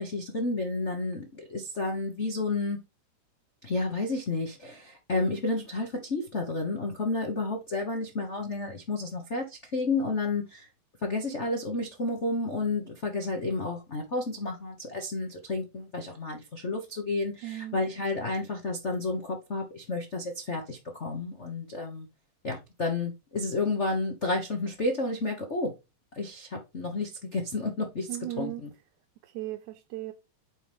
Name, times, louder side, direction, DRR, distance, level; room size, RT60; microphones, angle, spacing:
voice 1, 0.0-2.8 3.6-10.7 11.0-22.1 22.4-25.7 26.1-28.1 28.4-28.7, left 2 dB, 65° left, 0.7 m, -31 dB
voice 2, 17.4-17.8 28.1-28.7 29.2-30.1, right 15 dB, 80° right, 2.1 m, -37 dB
9.0 x 4.6 x 3.5 m
omnidirectional pair, 3.4 m